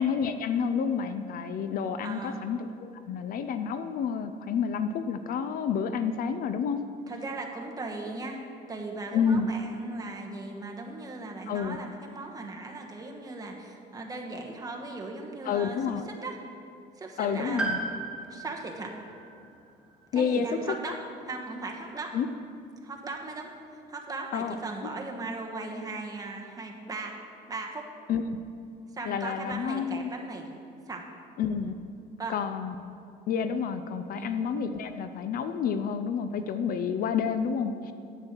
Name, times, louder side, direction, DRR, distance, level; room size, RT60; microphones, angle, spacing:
voice 1, 0.0-6.8 9.1-9.5 11.5-11.8 15.5-16.1 17.2-17.8 20.1-20.5 22.1-22.3 24.3-24.6 28.1-28.4 29.1-30.1 31.4-31.8 32.3-32.7 33.3-37.9, left 6 dB, 60° left, 10 dB, 0.5 m, -29 dB
voice 2, 2.0-2.5 7.1-8.4 8.7-15.8 16.1-16.5 17.0-17.8 18.3-18.9 20.1-21.0 21.2-22.1 22.8-27.2 27.5-27.8 28.9-30.5 30.9-31.1 32.2-32.4 34.2-34.4, right 3 dB, 20° right, 1 dB, 1.3 m, -38 dB
Piano, 17.6-21.5 21.7-21.8 23.0-23.1, right 3 dB, 5° right, 1.2 m, -37 dB
9.7 x 8.2 x 4.5 m, 2.5 s
cardioid pair, 110°, 17 cm